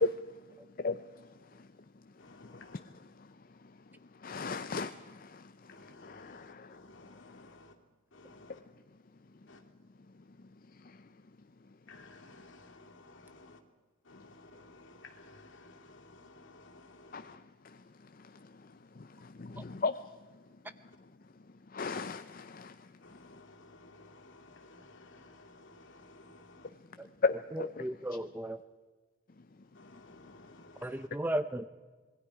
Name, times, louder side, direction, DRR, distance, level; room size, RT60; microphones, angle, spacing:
voice 1, 0.0-2.6 3.2-5.7 6.0-7.5 9.1-9.5 10.1-11.9 17.1-20.9 21.4-23.3 26.9-27.9 29.3-29.8, left 4 dB, 45° left, 0.5 m, -39 dB
voice 2, 2.2-2.8 5.7-7.8 8.1-8.6 9.5-9.7 11.9-13.6 14.0-17.4 20.9-21.0 21.9-22.0 23.0-26.7 29.5-31.1, left 2 dB, 65° left, 2.8 m, -55 dB
voice 3, 27.8-28.6 30.8-31.7, right 1 dB, 10° right, 0.5 m, -35 dB
26.5 x 21.0 x 4.9 m
head